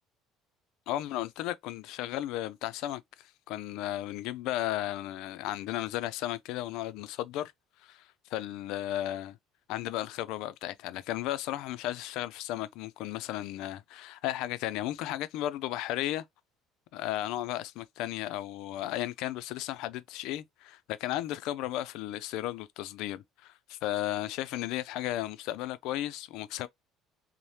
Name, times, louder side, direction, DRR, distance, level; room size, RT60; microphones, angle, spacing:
voice 1, 0.9-7.5 7.8-9.4 9.7-16.3 16.9-26.7, left 14 dB, 70° left, 0.3 m, -34 dB
3.2 x 2.0 x 2.7 m
cardioid pair, 155°, 0 cm